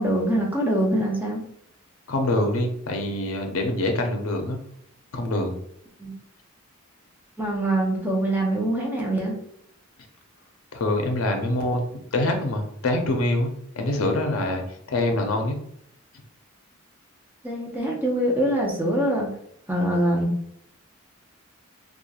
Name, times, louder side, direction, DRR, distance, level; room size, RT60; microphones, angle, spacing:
voice 1, 0.0-1.4 6.0-6.1 7.4-9.3 17.4-19.3 19.7-20.3, right 1 dB, 10° right, -2 dB, 0.6 m, -24 dB
voice 2, 2.1-4.6 5.1-5.6 10.7-14.6 14.9-15.6, left 1 dB, 70° left, 4 dB, 0.5 m, -25 dB
2.9 x 2.3 x 2.3 m, 0.71 s
head